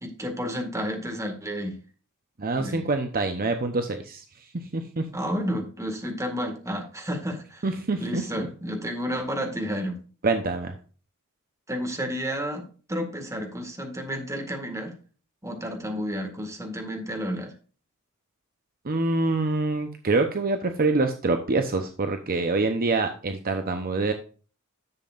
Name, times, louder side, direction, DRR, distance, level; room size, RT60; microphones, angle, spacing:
voice 1, 0.0-1.8 2.6-2.8 5.1-7.6 8.0-10.0 11.7-15.0 15.4-17.5, equal, 15° right, 4 dB, 1.9 m, -31 dB
voice 2, 2.4-5.1 7.6-8.2 10.2-10.7 18.8-24.1, right 3 dB, 45° right, 6 dB, 0.8 m, -26 dB
11.0 x 7.5 x 2.5 m, 0.38 s
head